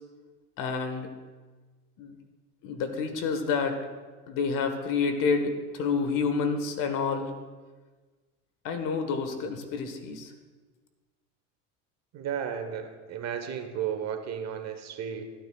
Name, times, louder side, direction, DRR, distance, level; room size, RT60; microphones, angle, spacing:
voice 1, 0.6-1.1 2.0-2.2 2.6-3.8 4.3-7.3 8.6-10.3, left 5 dB, 55° left, 7 dB, 1.5 m, -29 dB
voice 2, 12.1-15.2, right 8 dB, 45° right, 6 dB, 1.2 m, -33 dB
15.5 x 9.1 x 2.4 m, 1.3 s
hypercardioid pair, 85°, 37 cm